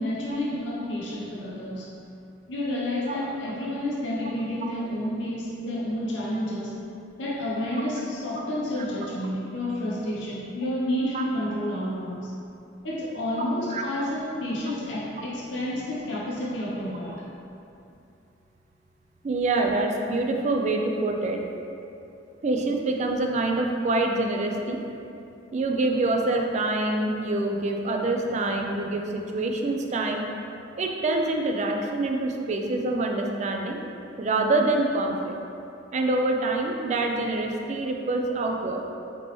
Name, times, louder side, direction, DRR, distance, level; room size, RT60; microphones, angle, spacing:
voice 1, 0.0-1.9 2.5-6.9 7.2-12.4 12.8-17.3, left 1 dB, 75° left, -5 dB, 0.7 m, -30 dB
voice 2, 19.2-21.5 22.4-24.8 25.5-30.3 30.8-33.8 34.2-35.3 35.9-38.8, right 2 dB, 40° right, 2 dB, 0.4 m, -26 dB
5.2 x 3.0 x 3.0 m, 2.7 s
head